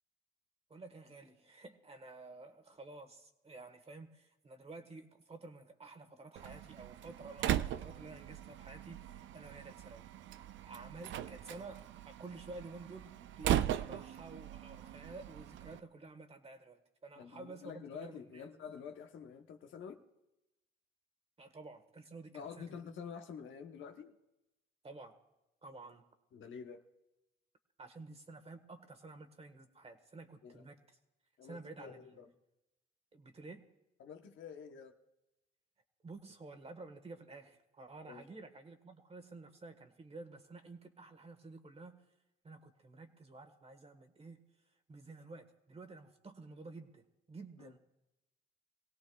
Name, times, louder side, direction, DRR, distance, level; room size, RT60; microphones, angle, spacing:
voice 1, 0.7-18.5 21.4-22.8 24.8-25.2 25.6-26.0 27.8-30.8 31.4-32.2 33.1-33.6 36.0-42.0 42.4-44.4 44.9-47.8, right 3 dB, 30° right, 8 dB, 1.4 m, -51 dB
Slam, 6.4-15.8, right 11 dB, 70° right, 0.4 m, -39 dB
voice 2, 17.2-20.0 22.3-24.1 26.3-26.9 30.4-30.6 31.4-32.3 34.0-35.0 38.1-38.2 47.6-47.7, left 6 dB, 75° left, 5 dB, 1.0 m, -48 dB
23.5 x 17.0 x 2.4 m, 0.95 s
cardioid pair, 90°, 20 cm